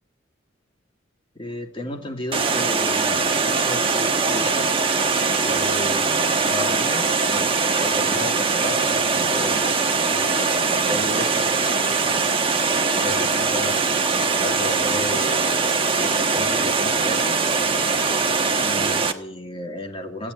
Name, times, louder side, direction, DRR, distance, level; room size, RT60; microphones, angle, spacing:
voice 1, 1.3-4.7 5.4-6.2 6.4-12.0 12.9-15.6 16.0-17.4 18.6-20.3, left 1 dB, 30° left, 3 dB, 2.4 m, -34 dB
Water, 2.3-19.1, right 4 dB, 30° right, 1.2 m, -21 dB
16.5 x 9.0 x 9.5 m, 0.63 s
head